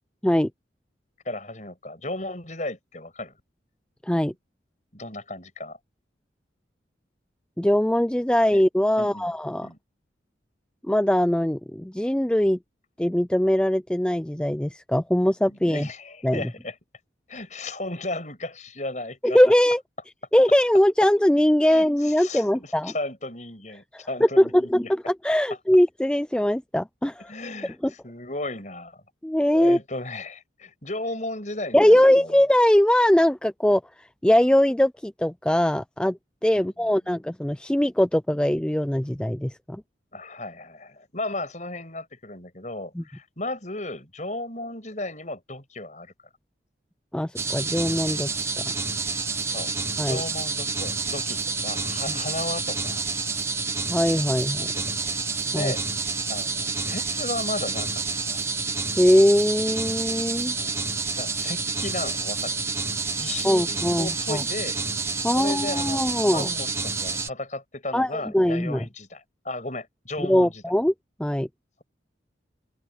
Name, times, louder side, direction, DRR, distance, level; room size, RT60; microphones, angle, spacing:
voice 1, 1.3-3.3 4.9-5.8 8.5-8.6 9.0-9.3 9.6-9.8 15.5-16.7 17.3-19.4 21.7-24.9 27.3-29.0 29.5-32.4 36.5-37.2 40.1-46.1 49.4-49.7 50.0-53.0 54.6-55.1 55.4-55.8 56.3-58.4 60.6-60.8 61.2-62.6 63.2-64.8 65.2-70.6, left 2 dB, 40° left, 6.9 m, -35 dB
voice 2, 7.6-9.7 10.9-12.6 13.0-15.9 16.2-16.5 19.2-19.8 20.3-22.9 24.4-27.3 27.8-27.9 29.2-29.8 31.7-33.8 34.2-39.8 43.0-43.1 47.1-48.3 50.0-50.2 53.9-54.7 55.5-55.7 59.0-60.5 63.4-64.4 65.2-66.5 67.9-68.8 70.2-70.9 71.2-71.5, left 1 dB, 5° left, 0.3 m, -21 dB
sound 1, 47.4-67.3, right 4 dB, 15° right, 1.1 m, -29 dB
open air
head